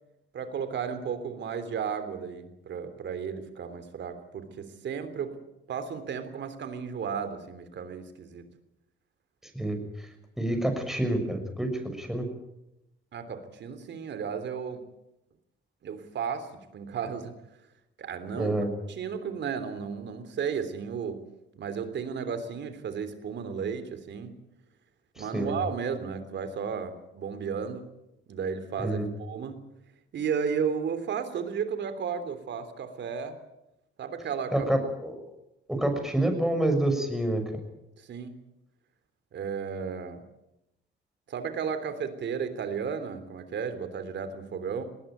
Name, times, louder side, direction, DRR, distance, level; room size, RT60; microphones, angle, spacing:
voice 1, 0.3-5.4 5.7-8.5 13.1-14.9 15.8-17.4 18.0-18.5 18.9-21.3 21.5-24.4 25.2-27.9 28.3-29.7 30.1-33.4 34.0-34.7 38.0-38.4 39.3-40.3 41.3-44.8, right 6 dB, 65° right, 11 dB, 3.3 m, -34 dB
voice 2, 9.5-10.1 10.4-11.7 12.0-12.3 18.4-18.7 25.2-25.5 28.8-29.0 34.5-35.1 35.7-37.4, right 1 dB, ahead, 4 dB, 6.3 m, -27 dB
19.5 x 19.0 x 9.2 m, 0.88 s
cardioid pair, 90°, 20 cm